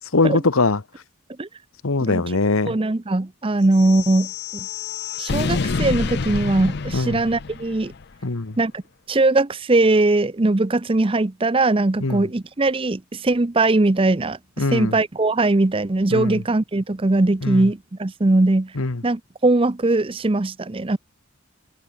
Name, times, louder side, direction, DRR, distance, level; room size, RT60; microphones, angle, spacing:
voice 1, 0.1-0.8 1.8-2.8 6.9-7.2 8.2-8.6 12.0-12.3 14.6-15.0 16.1-16.4 17.4-17.7 18.8-19.0, left 3 dB, 85° left, 1.2 m, -21 dB
voice 2, 2.7-4.7 5.2-7.9 8.6-8.8 9.1-18.7 19.0-21.0, right 2 dB, 25° right, 0.6 m, -20 dB
sound 1, 3.7-8.0, left 4 dB, 50° left, 0.6 m, -27 dB
head